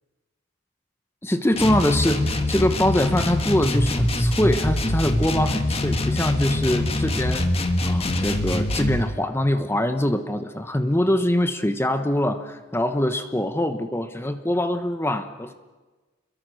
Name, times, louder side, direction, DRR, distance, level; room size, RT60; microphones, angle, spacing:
voice 1, 1.2-7.5 7.8-15.5, left 1 dB, 10° left, 8 dB, 1.0 m, -23 dB
sound 1, 1.5-9.1, left 1 dB, 30° left, 1.7 m, -24 dB
28.0 x 22.5 x 6.4 m, 1.3 s
head